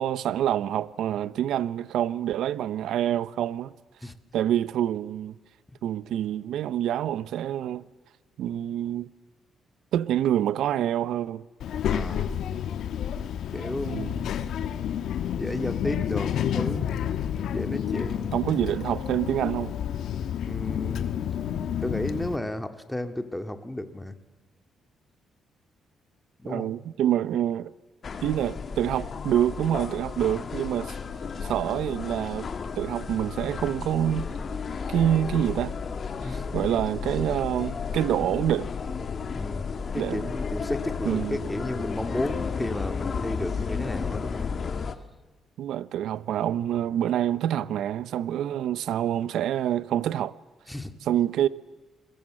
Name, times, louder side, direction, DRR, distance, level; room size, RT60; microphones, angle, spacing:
voice 1, 0.0-3.7 4.3-5.4 5.8-7.8 8.4-9.1 9.9-11.4 13.9-14.2 18.3-19.8 26.4-27.7 28.2-30.9 31.4-34.3 34.9-35.7 36.2-38.7 39.9-40.3 41.0-41.4 45.6-50.3 51.1-51.5, right 11 dB, 80° right, 0.7 m, -26 dB
Child speech kid speaking, 11.6-22.4, left 9 dB, 75° left, 1.3 m, -30 dB
voice 2, 11.9-12.3 13.5-14.3 15.4-16.9 17.5-18.3 20.5-21.1 21.8-24.1 26.4-26.7 36.2-36.4 39.3-44.5 50.7-50.9, left 1 dB, 5° left, 2.1 m, -33 dB
sound 1, 28.0-45.0, left 5 dB, 45° left, 1.7 m, -33 dB
28.5 x 22.0 x 7.7 m
cardioid pair, 90°, 0 cm